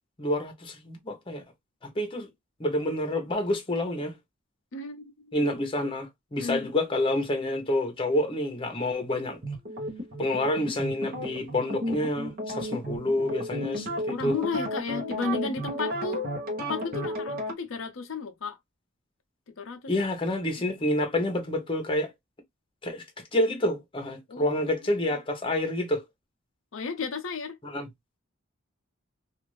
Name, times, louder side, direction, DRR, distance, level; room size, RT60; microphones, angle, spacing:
voice 1, 0.2-1.4 2.0-2.3 2.6-4.1 5.3-9.4 10.2-13.9 14.2-14.4 19.9-22.1 22.8-23.0 23.3-26.0 27.6-27.9, left 1 dB, 25° left, 0.9 m, -28 dB
voice 2, 4.7-5.5 6.4-6.7 14.1-16.3 16.6-18.6 19.6-19.9 24.3-25.1 26.7-27.6, left 4 dB, 75° left, 0.6 m, -34 dB
sound 1, 9.4-17.5, equal, 50° right, 1.0 m, -33 dB
2.5 x 2.5 x 3.1 m
head